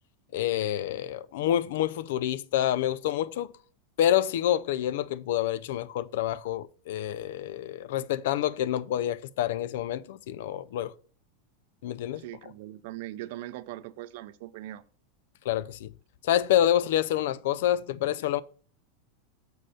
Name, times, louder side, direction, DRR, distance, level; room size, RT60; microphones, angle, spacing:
voice 1, 0.3-3.5 4.0-10.9 11.8-12.2 15.5-15.9 16.2-18.4, left 11 dB, 70° left, 0.3 m, -27 dB
voice 2, 12.2-14.8, right 15 dB, 65° right, 0.4 m, -40 dB
6.4 x 4.3 x 4.9 m
supercardioid pair, 140°, 0 cm